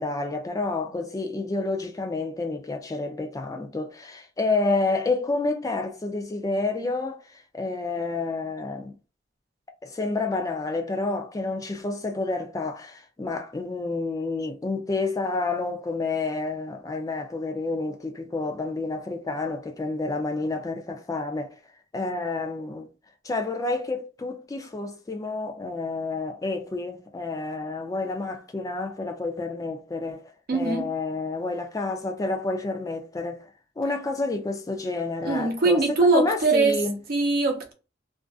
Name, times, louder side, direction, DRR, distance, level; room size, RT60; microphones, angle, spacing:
voice 1, 0.0-8.9 9.8-21.5 21.9-22.9 23.2-30.2 30.5-33.5 33.8-37.0, left 3 dB, 20° left, 0.3 m, -29 dB
voice 2, 30.5-30.9 35.2-36.8 37.1-37.7, right 3 dB, 55° right, 0.7 m, -22 dB
2.5 x 2.3 x 2.3 m
head